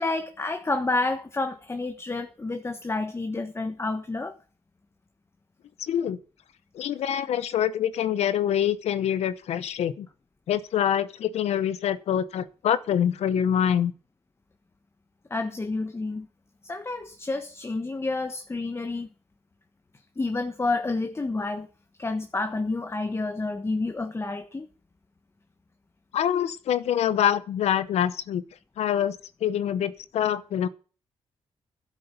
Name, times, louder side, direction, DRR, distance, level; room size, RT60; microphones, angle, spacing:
voice 1, 0.0-4.4 15.3-16.3 16.6-19.1 20.2-21.7 22.0-24.7, left 3 dB, 25° left, 1.3 m, -29 dB
voice 2, 5.8-6.2 6.7-10.1 10.5-13.9 26.1-28.4 28.8-29.2 29.4-30.7, left 9 dB, 80° left, 0.8 m, -25 dB
11.5 x 8.3 x 7.0 m
cardioid pair, 80°, 11 cm